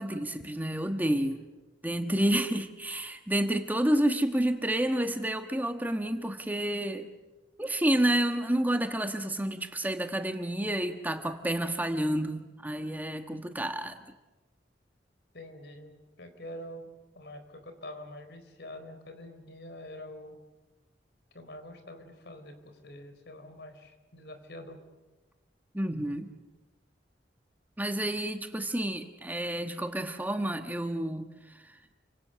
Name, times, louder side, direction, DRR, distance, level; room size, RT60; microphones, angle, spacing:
voice 1, 0.0-1.4 1.8-7.1 7.6-14.0 25.7-26.3 27.8-31.8, right 1 dB, 10° right, 7 dB, 1.3 m, -29 dB
voice 2, 15.3-16.9 17.1-20.4 21.3-24.8, left 1 dB, 65° left, 8 dB, 4.1 m, -45 dB
30.0 x 25.5 x 6.9 m, 1.1 s
head